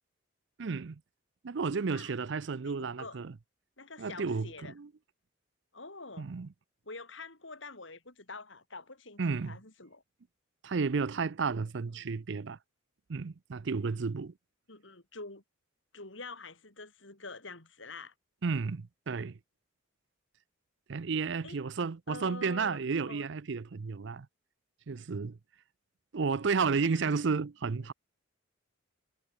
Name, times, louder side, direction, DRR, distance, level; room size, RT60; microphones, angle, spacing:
voice 1, 0.6-1.0 1.4-3.3 4.0-4.9 6.2-6.5 9.2-9.6 10.6-12.6 13.1-14.3 18.4-19.4 20.9-24.3 24.9-25.4 26.1-27.9, right 5 dB, 60° right, 0.5 m, -32 dB
voice 2, 2.6-3.2 3.8-4.7 5.7-6.3 6.8-10.0 11.9-12.1 14.7-15.4 15.9-18.1 21.4-21.6 22.1-22.8 23.1-23.3 26.8-27.1 27.8-27.9, left 3 dB, 65° left, 4.7 m, -46 dB
head